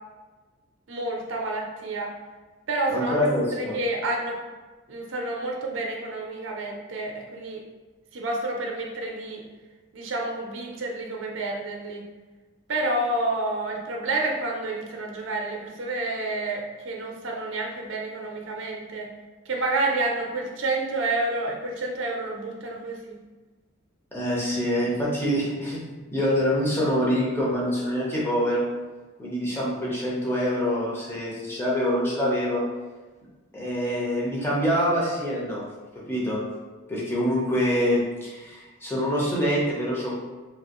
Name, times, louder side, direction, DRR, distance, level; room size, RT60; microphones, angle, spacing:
voice 1, 0.9-2.1 2.7-3.1 3.5-4.4 4.9-7.6 8.1-9.4 9.9-12.0 12.7-19.1 19.5-23.2, right 2 dB, 60° right, 0 dB, 0.5 m, -29 dB
voice 2, 2.9-3.8 24.1-25.8 26.1-28.6 29.2-32.6 33.5-35.6 36.1-36.4 36.9-40.2, equal, 10° left, -6 dB, 0.7 m, -25 dB
3.0 x 2.9 x 2.9 m, 1.3 s
head